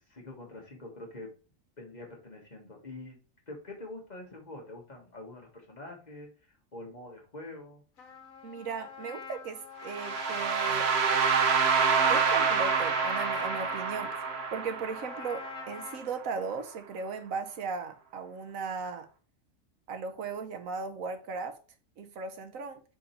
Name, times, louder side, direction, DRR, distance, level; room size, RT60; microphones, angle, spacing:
voice 1, 0.1-1.3 1.8-3.2 3.5-6.3 6.7-7.8, left 2 dB, 35° left, 1.6 m, -45 dB
Trumpet, 8.0-16.0, left 6 dB, 90° left, 1.5 m, -43 dB
voice 2, 8.4-10.9 12.1-14.1 14.5-19.1 19.9-21.6 22.0-22.8, right 5 dB, 90° right, 1.3 m, -37 dB
sound 1, 9.9-15.8, right 6 dB, 55° right, 1.0 m, -27 dB
5.0 x 5.0 x 4.4 m
omnidirectional pair, 1.4 m